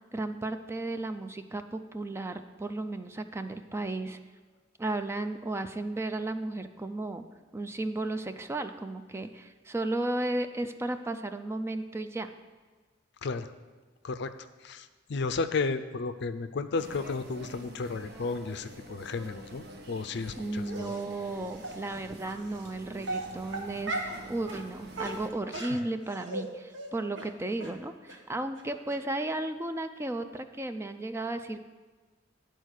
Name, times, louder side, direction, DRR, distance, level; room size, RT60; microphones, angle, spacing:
voice 1, 0.1-4.2 4.8-7.2 7.5-12.3 20.4-31.6, right 2 dB, 15° right, 8 dB, 0.4 m, -34 dB
voice 2, 13.2-13.5 14.0-14.3 14.6-20.9 25.5-25.6, left 4 dB, 60° left, 10 dB, 0.5 m, -33 dB
sound 1, 16.8-25.3, right 1 dB, 60° right, 1.0 m, -47 dB
Dog, 20.7-21.0 21.6-21.8 22.5-22.7 23.0-24.2 24.5-24.6 24.9-26.5 26.7-26.9 27.2-27.3 27.6-27.7 28.1-28.2 28.6-28.7 28.9-29.0, right 2 dB, 75° right, 1.3 m, -36 dB
11.0 x 4.5 x 6.4 m, 1.3 s
head